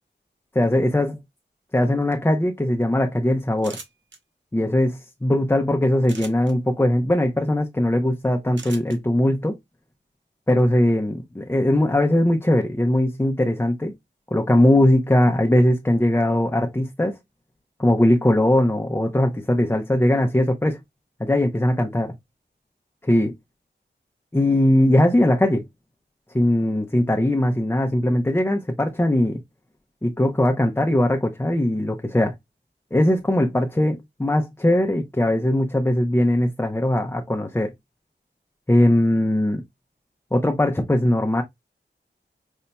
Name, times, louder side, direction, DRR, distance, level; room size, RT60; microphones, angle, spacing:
voice 1, 0.5-1.2 1.7-3.8 4.5-9.6 10.5-13.9 14.3-17.2 17.8-20.8 21.2-22.1 23.0-23.3 24.3-25.6 26.3-29.4 30.0-32.3 32.9-37.7 38.7-39.6 40.3-41.4, left 1 dB, 10° left, 0.7 m, -20 dB
sound 1, 3.6-4.2 6.0-6.5 8.6-9.0, right 4 dB, 80° right, 0.8 m, -39 dB
5.3 x 2.8 x 2.2 m
wide cardioid pair, 55°, 19 cm